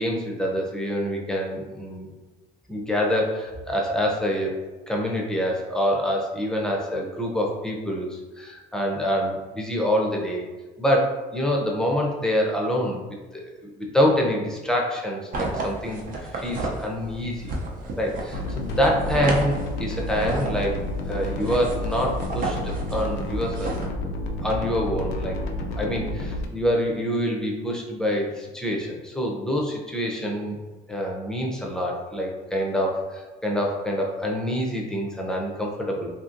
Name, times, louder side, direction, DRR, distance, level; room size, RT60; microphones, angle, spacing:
voice 1, 0.0-2.1 2.7-4.5 4.9-10.4 10.8-13.1 13.3-17.5 18.0-20.7 21.1-23.8 24.4-25.4 25.8-30.6 30.9-36.1, equal, 5° left, -1 dB, 0.5 m, -26 dB
sound 1, 15.3-23.9, right 2 dB, 55° right, 0.6 m, -33 dB
sound 2, 18.3-26.5, left 1 dB, 85° left, 0.4 m, -30 dB
2.8 x 2.7 x 2.5 m, 1.3 s
cardioid pair, 110°, 17 cm